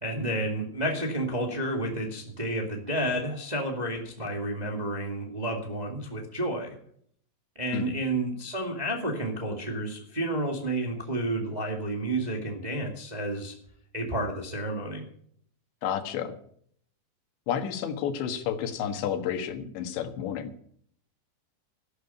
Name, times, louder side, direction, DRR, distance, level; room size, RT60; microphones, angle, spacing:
voice 1, 0.0-6.8 7.5-13.5 13.9-15.1, right 1 dB, 20° right, 2 dB, 1.2 m, -31 dB
voice 2, 15.8-16.3 17.5-20.5, left 8 dB, 90° left, 8 dB, 3.8 m, -31 dB
13.5 x 12.5 x 5.8 m, 0.62 s
omnidirectional pair, 5.0 m